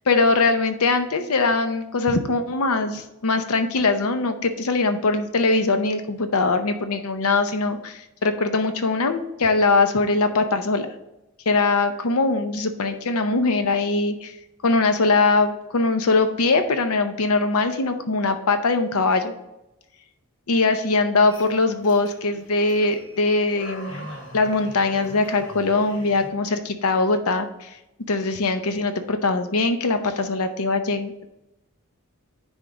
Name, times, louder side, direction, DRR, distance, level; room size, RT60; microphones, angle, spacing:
voice 1, 0.1-10.9 11.5-14.3 14.6-19.3 20.5-24.1 24.3-27.8 28.1-31.1, left 3 dB, 80° left, 8 dB, 0.7 m, -21 dB
sound 1, 21.3-26.3, equal, 55° left, 1.7 m, -42 dB
9.8 x 3.6 x 3.9 m, 0.91 s
head